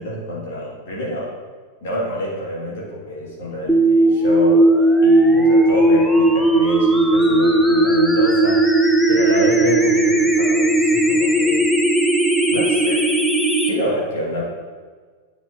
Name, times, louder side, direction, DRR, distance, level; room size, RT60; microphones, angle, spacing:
voice 1, 0.0-1.3 1.8-4.7 5.0-8.8 9.1-11.7 12.5-13.1 13.7-14.4, equal, 55° left, -5 dB, 2.0 m, -27 dB
sound 1, 3.7-13.7, right 1 dB, ahead, 0.6 m, -16 dB
9.2 x 4.9 x 2.7 m, 1.5 s
figure-of-eight pair, 90°, 0 cm